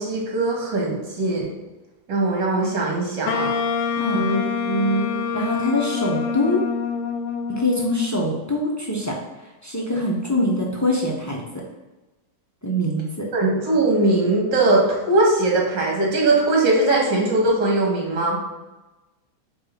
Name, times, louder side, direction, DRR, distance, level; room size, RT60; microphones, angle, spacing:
voice 1, 0.0-1.5 2.1-3.5 4.1-4.4 4.6-5.1 13.3-18.4, right 2 dB, 60° right, -2 dB, 2.5 m, -20 dB
Wind instrument woodwind instrument, 3.3-8.3, left 6 dB, 85° left, 1.4 m, -26 dB
voice 2, 5.3-6.6 7.5-9.2 9.6-11.4 12.6-13.3, left 1 dB, 15° left, -2 dB, 0.6 m, -23 dB
6.9 x 3.4 x 5.9 m, 1.1 s
omnidirectional pair, 2.2 m